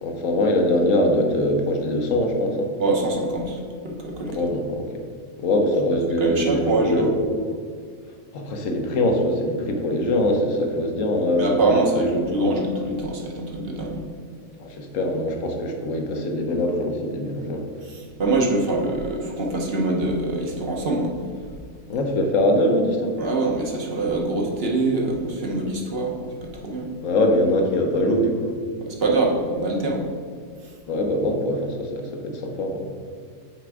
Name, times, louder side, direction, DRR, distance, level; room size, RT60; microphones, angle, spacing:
voice 1, 0.0-2.7 4.3-4.9 5.4-7.1 8.3-12.2 14.6-17.6 21.9-23.2 27.0-28.5 30.9-32.8, left 1 dB, 65° left, 3 dB, 1.2 m, -22 dB
voice 2, 2.8-4.4 6.2-7.1 11.4-14.1 17.8-21.1 23.2-26.9 28.8-30.1 30.6-30.7, right 2 dB, 50° right, 0 dB, 1.0 m, -24 dB
6.0 x 4.6 x 4.7 m, 2.1 s
omnidirectional pair, 1.6 m